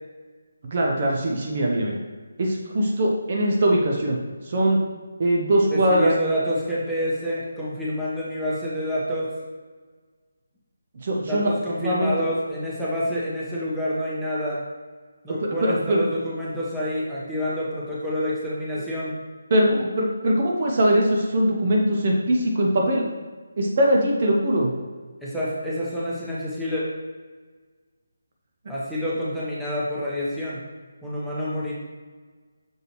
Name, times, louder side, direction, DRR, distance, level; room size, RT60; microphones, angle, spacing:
voice 1, 0.7-2.0 2.4-4.2 4.5-4.8 5.2-6.1 11.0-11.5 11.8-12.1 15.4-16.0 19.5-23.1 23.6-24.7, right 1 dB, 40° right, -1 dB, 0.9 m, -21 dB
voice 2, 5.7-9.3 11.3-14.6 15.2-19.1 25.2-26.8 28.7-30.6 31.0-31.7, equal, ahead, -10 dB, 1.1 m, -28 dB
6.3 x 4.8 x 3.1 m, 1.4 s
figure-of-eight pair, 155°, 0 cm